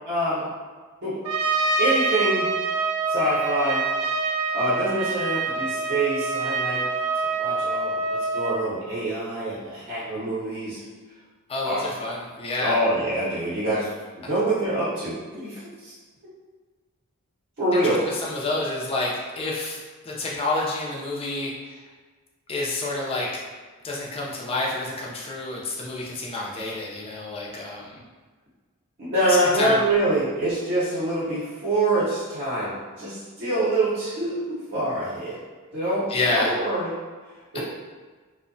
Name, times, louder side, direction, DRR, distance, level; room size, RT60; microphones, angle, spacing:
voice 1, 0.1-0.5 1.0-1.2 1.8-2.5 3.1-3.8 4.5-6.8 7.4-10.8 11.6-11.9 12.6-13.9 14.2-15.9 17.6-18.0 29.0-35.4 35.7-36.9 37.5-37.6, right 1 dB, 50° right, -9 dB, 0.7 m, -25 dB
Trumpet, 1.3-8.6, right 3 dB, 85° right, 0.3 m, -26 dB
voice 2, 11.5-12.7 17.7-21.8 22.5-23.4 23.8-28.0 29.3-29.8 36.1-36.6 37.5-37.6, left 2 dB, 25° left, -3 dB, 0.4 m, -29 dB
2.7 x 2.1 x 2.6 m, 1.4 s
head